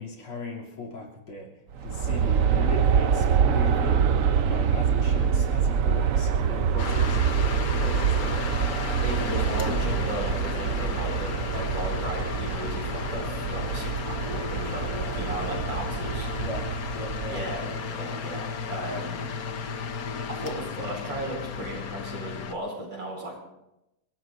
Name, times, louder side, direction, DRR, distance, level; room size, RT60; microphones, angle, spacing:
voice 1, 0.0-1.5 1.8-4.1 4.4-7.2 7.8-8.4 16.3-17.4, left 3 dB, 75° left, -2 dB, 3.8 m, -38 dB
Aircraft, 1.7-17.8, right 7 dB, 85° right, 0.7 m, -25 dB
sound 1, 6.8-22.5, left 6 dB, 55° left, 1.1 m, -34 dB
voice 2, 9.0-16.3 17.3-19.3 20.3-23.4, right 1 dB, 60° right, 0 dB, 5.5 m, -36 dB
28.0 x 17.5 x 2.6 m, 0.89 s
omnidirectional pair, 2.4 m